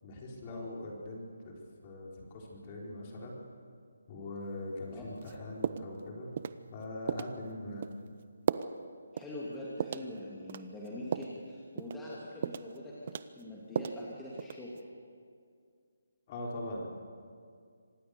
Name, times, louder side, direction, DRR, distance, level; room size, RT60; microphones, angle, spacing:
voice 1, 0.0-3.4 4.1-6.3 6.7-7.9 16.3-16.9, left 1 dB, 30° left, -2 dB, 4.6 m, -42 dB
sound 1, 5.2-5.3 5.6-6.0 6.4-6.6 7.1-7.3 7.8-8.0 8.5-8.7 9.2-9.3 9.8-10.1 10.5-11.4 11.8-12.0 12.4-12.8 13.1-14.0 14.4-14.8, right 7 dB, 40° right, 0.7 m, -35 dB
voice 2, 9.1-14.9, left 1 dB, 5° left, -7 dB, 2.7 m, -43 dB
25.5 x 19.0 x 7.0 m, 2.2 s
hypercardioid pair, 165°, 0 cm